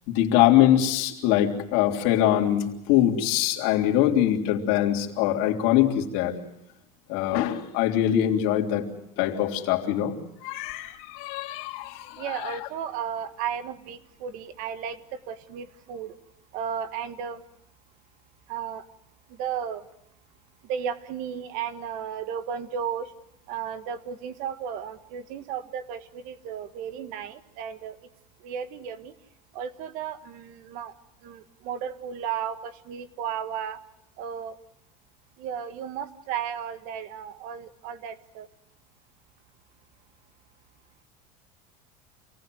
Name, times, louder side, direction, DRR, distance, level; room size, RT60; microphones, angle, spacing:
voice 1, 0.1-6.4 7.1-8.8 9.2-10.1 10.4-12.7, left 12 dB, 55° left, 1 dB, 3.3 m, -23 dB
voice 2, 12.2-16.1 16.5-17.4 18.5-18.9 19.3-19.9 20.6-23.1 23.5-28.0 28.4-29.1 29.5-30.9 31.2-33.8 34.2-34.6 35.4-38.5, right 8 dB, 50° right, 12 dB, 1.6 m, -34 dB
27.5 x 18.5 x 7.7 m, 0.85 s
cardioid pair, 175°, 18 cm